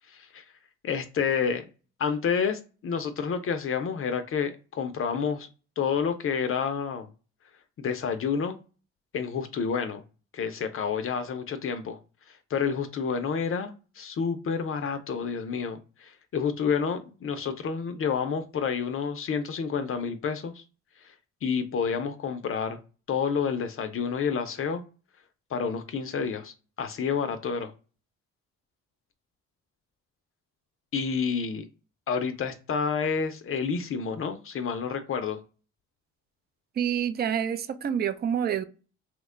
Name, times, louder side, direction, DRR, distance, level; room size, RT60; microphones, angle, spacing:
voice 1, 0.1-0.4 0.8-1.6 2.0-5.5 5.8-7.1 7.8-8.6 9.1-10.0 10.3-12.0 12.3-20.6 21.0-21.1 21.4-22.8 23.1-24.8 25.5-27.7 30.9-31.6 32.1-35.4, left 6 dB, 45° left, 0.5 m, -29 dB
voice 2, 36.8-38.6, right 8 dB, 35° right, 0.4 m, -27 dB
2.9 x 2.1 x 3.6 m
cardioid pair, 90°, 30 cm